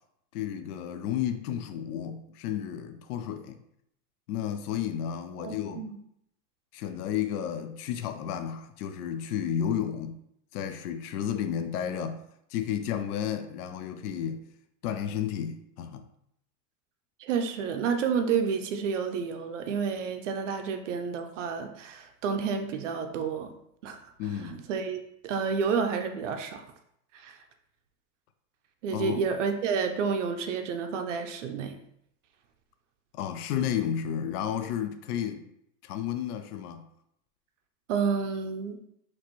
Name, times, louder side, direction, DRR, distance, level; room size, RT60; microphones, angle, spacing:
voice 1, 0.3-3.6 4.3-5.8 6.7-10.2 10.5-12.2 12.5-14.4 14.8-16.0 24.2-24.6 28.9-29.2 33.1-35.4 35.8-36.8, left 9 dB, 70° left, 8 dB, 0.5 m, -32 dB
voice 2, 5.4-6.0 17.2-23.5 23.8-24.0 24.4-26.6 27.1-27.4 28.8-31.8 37.9-38.8, right 6 dB, 50° right, 6 dB, 0.5 m, -30 dB
4.2 x 3.0 x 3.0 m, 0.75 s
supercardioid pair, 175°, 48 cm